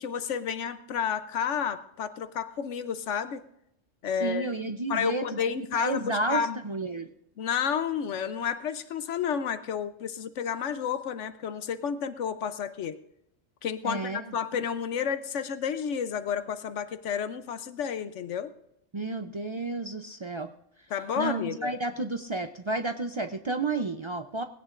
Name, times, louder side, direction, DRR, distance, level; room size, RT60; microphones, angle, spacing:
voice 1, 0.0-3.4 4.0-4.5 4.9-6.6 7.4-13.0 13.6-18.5 20.9-21.7, left 7 dB, 75° left, 12 dB, 1.0 m, -31 dB
voice 2, 4.2-5.4 5.7-7.1 13.8-14.6 18.9-20.5 21.2-24.4, right 3 dB, 50° right, 7 dB, 0.3 m, -31 dB
20.0 x 16.5 x 2.5 m, 0.78 s
omnidirectional pair, 1.3 m